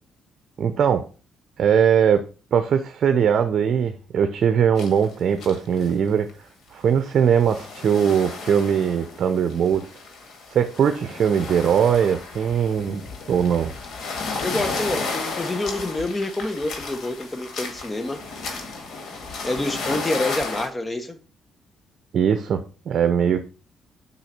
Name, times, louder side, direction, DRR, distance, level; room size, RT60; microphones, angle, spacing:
voice 1, 0.6-1.1 1.6-2.2 2.5-6.3 6.7-9.8 10.5-13.7 22.1-23.5, right 8 dB, 60° right, 8 dB, 0.7 m, -20 dB
sound 1, 4.8-5.1 5.4-5.9 6.3-6.4 7.1-20.7, left 4 dB, 70° left, 1.8 m, -33 dB
voice 2, 14.4-18.2 19.4-21.2, left 2 dB, 20° left, 7 dB, 1.3 m, -27 dB
5.6 x 4.1 x 5.9 m, 0.36 s
cardioid pair, 90°, 0 cm